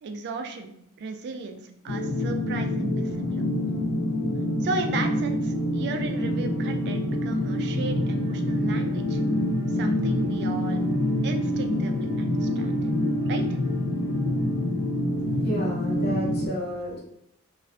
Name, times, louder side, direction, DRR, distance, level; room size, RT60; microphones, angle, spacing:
voice 1, 0.0-3.4 4.6-9.2 9.7-10.8 11.2-12.8 13.3-13.5, right 3 dB, 50° right, 6 dB, 0.3 m, -35 dB
sound 1, 1.9-16.5, left 1 dB, 80° left, 0.5 m, -26 dB
sound 2, 5.4-15.7, left 1 dB, 20° right, 0.7 m, -47 dB
voice 2, 15.3-17.0, equal, 45° left, -6 dB, 0.9 m, -32 dB
2.4 x 2.1 x 2.4 m, 0.76 s
head